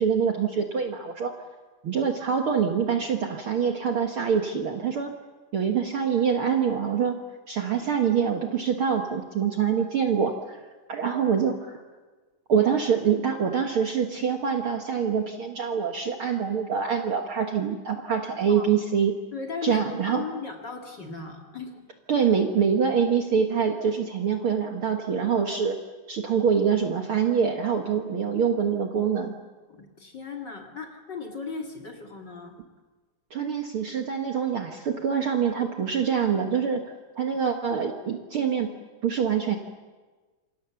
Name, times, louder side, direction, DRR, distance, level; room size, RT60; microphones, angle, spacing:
voice 1, 0.0-1.3 1.8-5.1 5.5-7.2 7.5-10.6 10.9-11.7 12.5-19.1 19.6-20.3 22.1-25.8 26.1-29.4 33.3-36.8 37.2-38.7 39.0-39.6, right 7 dB, 50° right, 3 dB, 1.8 m, -25 dB
voice 2, 19.3-21.8 29.7-32.6, left 5 dB, 35° left, 2 dB, 2.3 m, -37 dB
28.0 x 25.0 x 7.1 m, 1.3 s
omnidirectional pair, 3.8 m